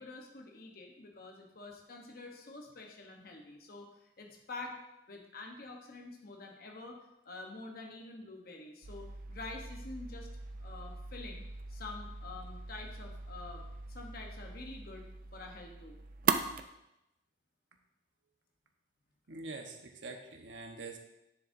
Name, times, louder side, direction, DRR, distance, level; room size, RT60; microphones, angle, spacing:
voice 1, 0.0-4.8 5.1-7.0 7.2-10.3 10.6-11.4 11.7-13.6 13.9-15.0 15.3-15.9, left 3 dB, 50° left, 1 dB, 1.0 m, -47 dB
sound 1, 8.8-16.6, right 5 dB, 45° right, 0.4 m, -39 dB
voice 2, 19.3-21.0, right 3 dB, 80° right, 3 dB, 1.1 m, -45 dB
9.9 x 7.3 x 2.6 m, 0.88 s
head